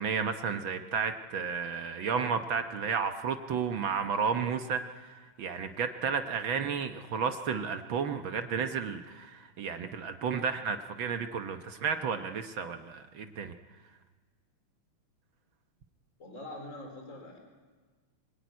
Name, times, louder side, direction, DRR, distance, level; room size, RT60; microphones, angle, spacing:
voice 1, 0.0-13.5, right 6 dB, 65° right, 7 dB, 1.2 m, -32 dB
voice 2, 16.2-17.4, left 1 dB, 25° left, 3 dB, 4.2 m, -44 dB
25.0 x 20.5 x 9.4 m, 1.4 s
omnidirectional pair, 3.5 m